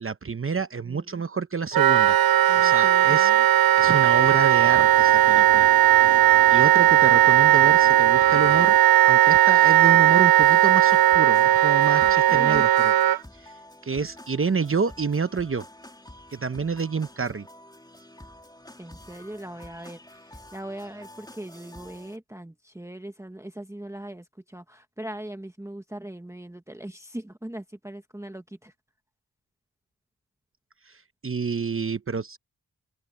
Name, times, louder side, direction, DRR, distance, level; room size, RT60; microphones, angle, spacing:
voice 1, 0.0-3.3 3.8-5.7 6.3-8.7 9.1-12.9 13.4-13.5 13.8-15.7 16.3-17.5 31.2-32.4, right 5 dB, 35° right, 0.9 m, -28 dB
voice 2, 0.8-1.2 2.5-3.4 12.1-12.6 18.8-28.7, right 1 dB, 5° right, 1.4 m, -40 dB
Wind instrument woodwind instrument, 1.7-13.2, right 12 dB, 65° right, 0.6 m, -17 dB
sound 1, 3.8-8.8, right 8 dB, 90° right, 4.9 m, -41 dB
sound 2, 10.4-22.2, left 1 dB, 10° left, 3.6 m, -48 dB
open air
wide cardioid pair, 95°, 39 cm